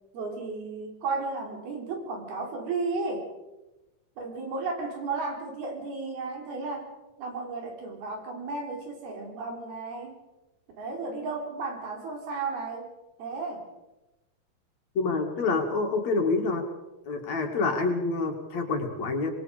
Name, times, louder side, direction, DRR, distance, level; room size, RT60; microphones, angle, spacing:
voice 1, 0.1-3.3 4.2-10.2 10.8-12.9 13.2-13.7, right 3 dB, 90° right, 2 dB, 5.7 m, -34 dB
voice 2, 14.9-16.6 17.1-19.3, left 3 dB, 50° left, 3 dB, 3.4 m, -27 dB
26.5 x 21.5 x 5.2 m, 1.0 s
omnidirectional pair, 4.3 m